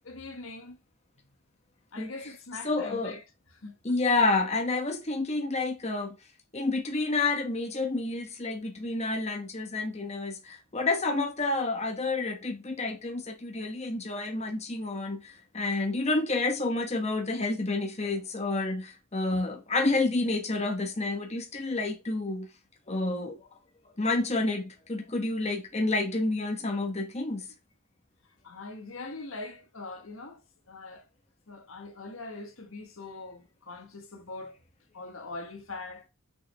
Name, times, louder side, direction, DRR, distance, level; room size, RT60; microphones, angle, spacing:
voice 1, 0.0-0.8 1.9-3.2 3.6-3.7 19.3-19.4 28.4-30.4 30.7-31.0 31.5-34.6 34.9-36.1, left 3 dB, 70° left, 1.5 m, -42 dB
voice 2, 2.0-2.3 2.6-3.2 3.8-6.2 6.5-22.5 22.9-23.4 24.0-27.5, left 3 dB, 30° left, 1.1 m, -29 dB
6.4 x 6.1 x 3.4 m
head